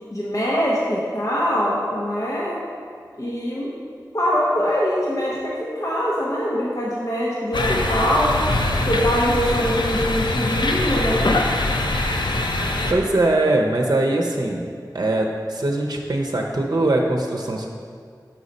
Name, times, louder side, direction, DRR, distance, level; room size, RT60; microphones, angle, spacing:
voice 1, 0.0-2.6 3.2-3.7 4.1-8.3 8.8-11.3, equal, 50° left, -6 dB, 1.0 m, -23 dB
sound 1, 7.5-12.9, left 2 dB, 85° left, 0.5 m, -23 dB
voice 2, 12.9-14.7 14.9-17.7, right 2 dB, 60° right, 1 dB, 0.7 m, -21 dB
6.3 x 5.7 x 4.1 m, 2.1 s
wide cardioid pair, 45°, 8 cm